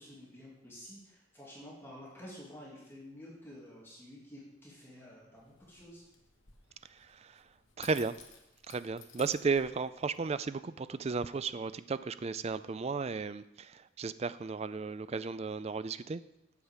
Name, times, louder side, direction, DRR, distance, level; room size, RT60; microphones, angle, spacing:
voice 1, 0.0-6.0, left 1 dB, 10° left, -6 dB, 2.4 m, -50 dB
sound 1, 5.4-10.3, left 7 dB, 60° left, 1.3 m, -57 dB
voice 2, 7.8-8.1 8.7-16.2, right 4 dB, 30° right, 14 dB, 0.3 m, -34 dB
8.3 x 5.9 x 7.3 m, 0.86 s
head